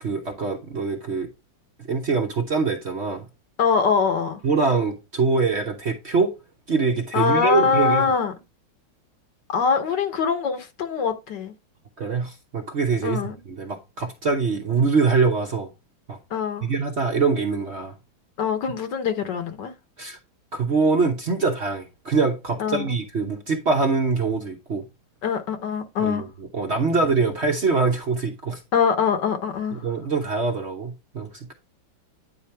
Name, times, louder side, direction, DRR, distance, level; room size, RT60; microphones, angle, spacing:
voice 1, 0.0-1.3 1.9-3.2 4.4-6.3 6.7-8.1 12.0-13.2 13.5-15.7 16.1-16.2 16.6-17.9 20.0-20.2 20.5-24.8 26.0-26.3 26.5-28.6 29.7-31.5, right 4 dB, 45° right, 1.0 m, -24 dB
voice 2, 3.6-4.4 7.1-8.3 9.5-11.5 13.0-13.4 16.3-16.7 18.4-19.7 22.6-22.9 25.2-26.3 28.7-29.9, left 6 dB, 65° left, 1.7 m, -23 dB
9.6 x 4.3 x 3.4 m
omnidirectional pair, 2.1 m